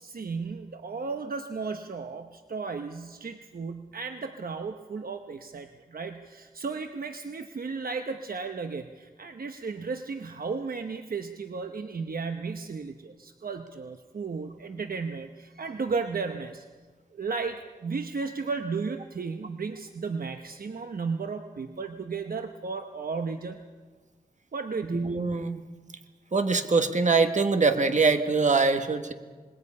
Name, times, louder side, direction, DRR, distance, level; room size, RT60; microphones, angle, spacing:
voice 1, 0.0-16.6 17.1-23.6 24.5-25.0, right 4 dB, 70° right, 6 dB, 1.0 m, -34 dB
voice 2, 24.9-25.6 26.3-29.1, right 4 dB, 50° right, 7 dB, 1.5 m, -23 dB
26.5 x 21.0 x 5.5 m, 1.4 s
wide cardioid pair, 90°, 16 cm